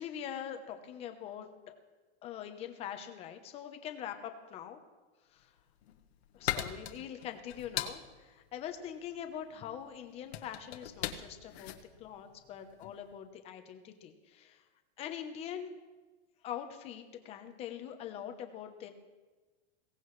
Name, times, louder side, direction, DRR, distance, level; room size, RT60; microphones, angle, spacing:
voice 1, 0.0-1.8 2.2-4.8 5.3-5.5 6.3-14.6 15.0-15.7 16.4-18.9, left 9 dB, 20° left, 7 dB, 0.9 m, -43 dB
sound 1, 5.6-13.0, left 11 dB, 65° left, 1.3 m, -40 dB
22.0 x 17.0 x 3.2 m, 1.3 s
supercardioid pair, 175°, 34 cm